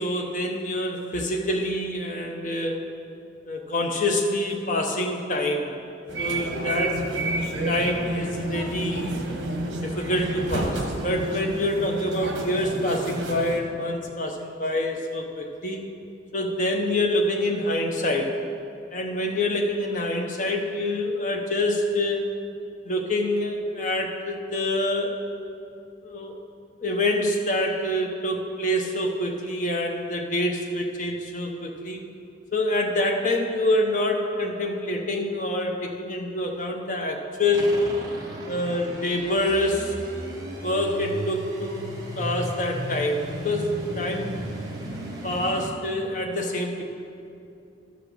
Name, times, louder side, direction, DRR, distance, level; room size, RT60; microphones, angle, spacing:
voice 1, 0.0-3.0 3.5-5.7 6.2-7.1 7.7-9.2 9.8-15.8 16.3-18.4 18.9-22.3 22.8-25.2 26.0-26.3 26.8-32.0 32.5-37.8 38.5-39.9 40.6-41.9 42.2-44.4 45.2-46.8, left 1 dB, 40° left, 2 dB, 0.8 m, -26 dB
sound 1, 6.1-13.6, right 2 dB, 60° right, 1.2 m, -30 dB
sound 2, 37.5-45.7, right 1 dB, 20° right, 1.1 m, -35 dB
12.5 x 5.0 x 6.5 m, 2.6 s
head